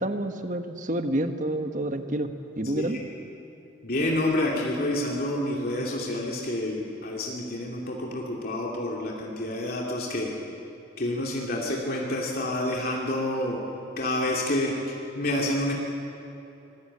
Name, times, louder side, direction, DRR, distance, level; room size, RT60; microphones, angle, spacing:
voice 1, 0.0-2.3 2.5-3.0, right 1 dB, 40° right, 7 dB, 1.4 m, -28 dB
voice 2, 3.8-10.3 11.0-13.6 14.0-15.7, left 1 dB, 50° left, -2 dB, 2.7 m, -28 dB
25.5 x 21.0 x 8.6 m, 2.9 s
head